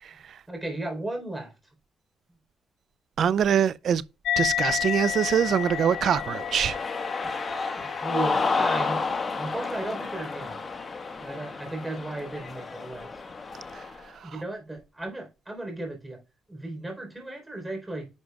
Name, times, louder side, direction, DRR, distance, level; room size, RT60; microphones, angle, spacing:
voice 1, 0.5-1.5 7.8-9.0 9.4-10.6 11.2-13.1 14.2-16.2 16.5-18.1, right 2 dB, 15° right, 3.9 m, -35 dB
voice 2, 3.2-4.0 4.4-6.8 14.2-14.3, right 8 dB, 60° right, 0.4 m, -23 dB
sound 1, 4.2-11.1, left 12 dB, 80° left, 0.3 m, -33 dB
Cheering, 4.8-14.0, left 4 dB, 35° left, 1.5 m, -31 dB
10.5 x 6.3 x 2.4 m
cardioid pair, 90°, 0 cm